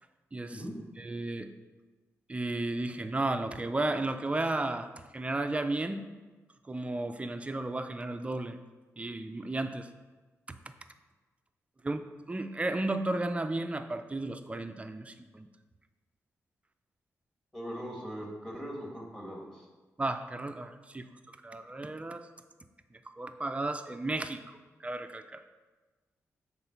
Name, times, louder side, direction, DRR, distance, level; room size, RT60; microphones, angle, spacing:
voice 1, 0.3-0.6 1.0-1.5 2.3-6.1 6.7-8.6 9.0-9.9 10.5-10.7 11.8-15.5 20.0-21.1 21.4-22.3 23.2-25.4, right 2 dB, 20° right, 8 dB, 0.5 m, -34 dB
voice 2, 17.5-19.7, equal, 10° left, -1 dB, 2.0 m, -40 dB
7.7 x 3.9 x 5.9 m, 1.3 s
cardioid pair, 85°, 6 cm